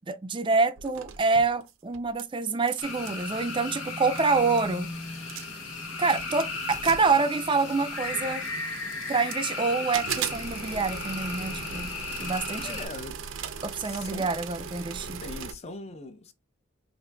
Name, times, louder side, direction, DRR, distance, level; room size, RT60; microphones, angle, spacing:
voice 1, 0.0-4.9 6.0-8.4 9.1-11.9 12.2-12.8 13.6-15.2, right 4 dB, 25° right, 0.4 m, -26 dB
sound 1, 0.8-2.2 2.5-3.2 3.9-4.0 4.2-4.7 5.1-5.7 6.1-7.9 8.4-9.5 9.9-15.5, right 7 dB, 80° right, 0.5 m, -38 dB
sound 2, 2.8-12.9, left 3 dB, 85° left, 1.2 m, -35 dB
voice 2, 12.6-13.2 13.7-14.2 15.2-16.3, left 3 dB, 35° left, 0.5 m, -41 dB
5.0 x 2.5 x 2.2 m
head